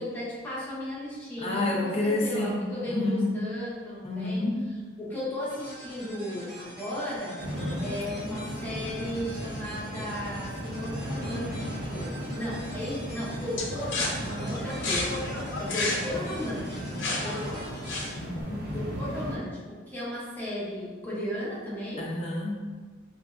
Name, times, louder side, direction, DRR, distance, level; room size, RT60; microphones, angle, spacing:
voice 1, 0.0-4.4 5.0-7.4 7.8-11.5 11.9-15.2 15.5-17.7 18.7-22.1, left 1 dB, 10° left, -9 dB, 1.0 m, -35 dB
voice 2, 1.4-2.6 2.9-3.3 4.0-4.6 7.6-7.9 17.1-17.2 18.1-18.6 22.0-22.6, left 2 dB, 30° left, -3 dB, 0.5 m, -29 dB
sound 1, 5.5-19.1, right 1 dB, 25° right, 1.1 m, -46 dB
sound 2, 7.4-19.4, equal, 50° right, 0.6 m, -36 dB
sound 3, 13.6-18.4, left 2 dB, 75° left, 0.5 m, -32 dB
3.6 x 2.9 x 2.5 m, 1.4 s
head